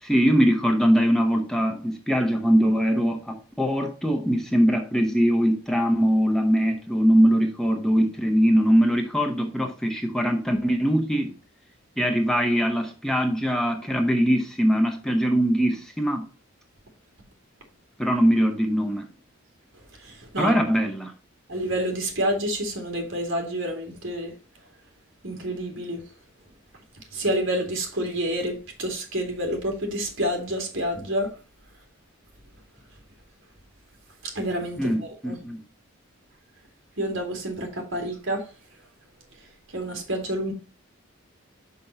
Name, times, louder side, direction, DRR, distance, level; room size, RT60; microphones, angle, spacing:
voice 1, 0.0-11.3 12.0-16.3 18.0-19.1 20.4-21.1 34.8-35.6, equal, 5° left, 0.7 m, -22 dB
voice 2, 20.0-20.5 21.5-24.3 25.2-26.0 27.1-31.3 34.2-35.4 37.0-38.4 39.7-40.5, right 1 dB, 65° right, 2.5 m, -28 dB
5.8 x 5.6 x 5.3 m
head